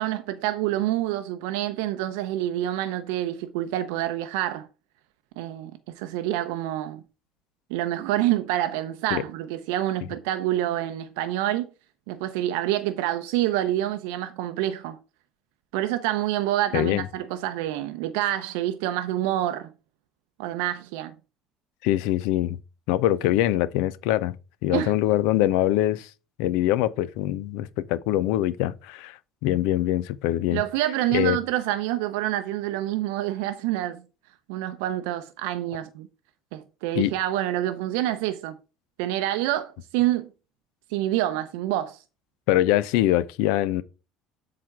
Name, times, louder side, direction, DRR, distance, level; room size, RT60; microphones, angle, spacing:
voice 1, 0.0-4.7 5.4-7.0 7.7-11.7 12.1-15.0 15.7-19.7 20.4-21.1 24.7-24.9 30.5-34.0 34.5-36.1 36.5-38.6 39.0-40.3 40.9-42.0, right 14 dB, 75° right, 0.6 m, -27 dB
voice 2, 16.7-17.1 21.8-22.6 22.9-24.4 24.6-26.1 26.4-30.6 31.1-31.4 36.9-37.1 42.5-43.8, left 14 dB, 70° left, 0.5 m, -23 dB
7.4 x 4.1 x 4.7 m
hypercardioid pair, 65°, 0 cm